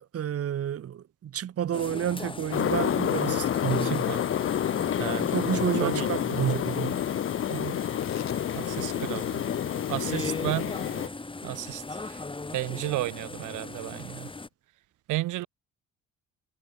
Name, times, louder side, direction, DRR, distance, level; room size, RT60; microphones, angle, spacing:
voice 1, 0.1-4.1 5.2-7.0, right 10 dB, 50° right, 1.1 m, -30 dB
sound 1, 1.7-14.5, left 3 dB, 15° left, 1.9 m, -39 dB
sound 2, 2.5-11.1, left 10 dB, 45° left, 0.6 m, -29 dB
voice 2, 3.8-4.2 5.0-5.3 5.8-6.1 6.3-6.4 7.5-7.8 8.5-9.4 9.9-10.7 11.4-12.2 12.5-14.3 15.1-15.5, right 17 dB, 85° right, 0.9 m, -33 dB
Tearing, 7.8-14.5, left 10 dB, 60° left, 3.0 m, -55 dB
cardioid pair, 90°, 30 cm